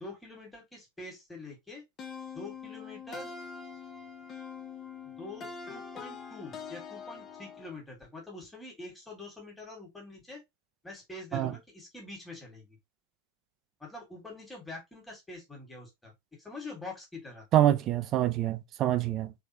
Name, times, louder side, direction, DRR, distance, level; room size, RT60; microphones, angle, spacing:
voice 1, 0.0-1.8 2.3-3.3 5.0-10.4 10.8-12.8 13.8-16.1 16.4-17.5, left 2 dB, 5° left, 1.9 m, -45 dB
sound 1, 2.0-7.8, left 5 dB, 25° left, 0.9 m, -44 dB
voice 2, 17.5-19.3, right 12 dB, 35° right, 0.6 m, -26 dB
3.6 x 3.5 x 2.8 m
figure-of-eight pair, 90°, 0 cm